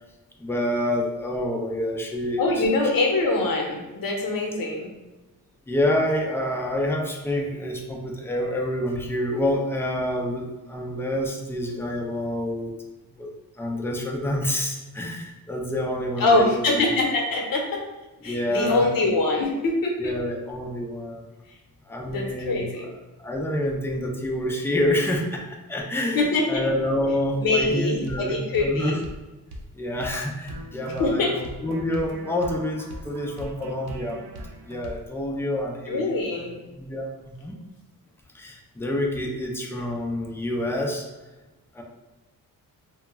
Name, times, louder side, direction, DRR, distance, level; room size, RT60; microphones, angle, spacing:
voice 1, 0.4-2.6 5.7-12.7 13.2-13.3 13.6-16.8 18.2-18.9 20.0-21.3 21.9-22.7 23.2-25.4 25.7-29.0 29.7-34.2 34.6-36.2 36.7-37.6 38.3-41.1 41.7-41.8, left 1 dB, 5° left, 0 dB, 0.3 m, -27 dB
voice 2, 2.4-4.9 16.2-17.8 18.2-20.1 22.1-22.9 26.1-26.6 27.4-29.0 31.0-31.3 35.9-36.5, left 2 dB, 60° left, 0 dB, 0.7 m, -23 dB
sound 1, 27.6-27.8 28.1-28.2 28.5-28.7 29.0-29.2 29.5-29.7 30.0-30.2 30.5-35.1, equal, 75° right, 0.5 m, -40 dB
2.3 x 2.0 x 3.4 m, 1.1 s
cardioid pair, 85°, 40 cm